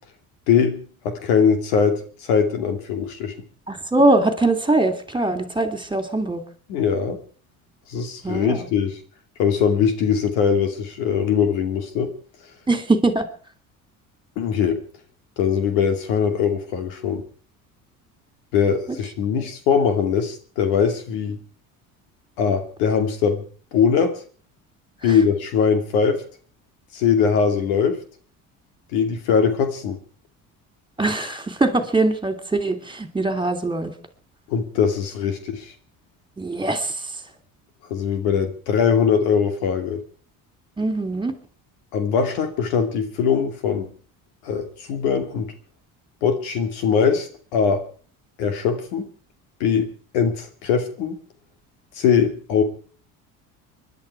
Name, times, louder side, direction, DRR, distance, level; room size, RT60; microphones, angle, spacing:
voice 1, 0.5-2.0 2.3-3.3 6.7-7.2 7.9-9.0 9.4-12.1 14.4-14.8 15.4-17.2 18.5-21.4 22.4-23.4 23.7-24.2 25.0-26.2 26.9-28.0 28.9-30.0 34.5-35.7 37.9-40.0 41.9-43.9 44.4-45.5 46.2-47.8 48.4-49.1 49.6-49.9 50.1-51.2 52.0-52.6, left 6 dB, 85° left, 7 dB, 2.6 m, -21 dB
voice 2, 3.7-6.4 8.2-8.7 12.7-13.2 19.4-19.5 25.0-25.2 31.0-33.9 36.4-37.1 40.8-41.3, right 2 dB, 10° right, 7 dB, 2.8 m, -22 dB
24.5 x 11.0 x 4.7 m, 0.42 s
supercardioid pair, 75°, 42 cm